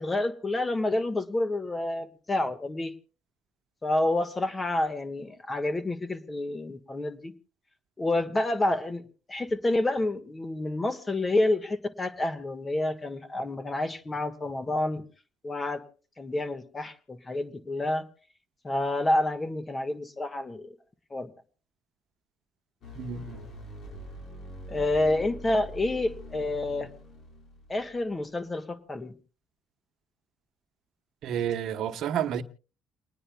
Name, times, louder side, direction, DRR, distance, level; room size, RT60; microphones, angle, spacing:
voice 1, 0.0-2.9 3.8-7.3 8.0-9.0 9.3-15.0 15.4-15.8 16.2-18.0 18.6-20.7 21.1-21.3 24.7-26.9 27.7-29.2, left 2 dB, 20° left, 1.4 m, -28 dB
sound 1, 22.8-28.1, equal, 55° left, 5.0 m, -44 dB
voice 2, 22.9-23.5 31.2-32.4, right 9 dB, 70° right, 1.0 m, -30 dB
29.5 x 9.9 x 2.2 m
cardioid pair, 100°, 0 cm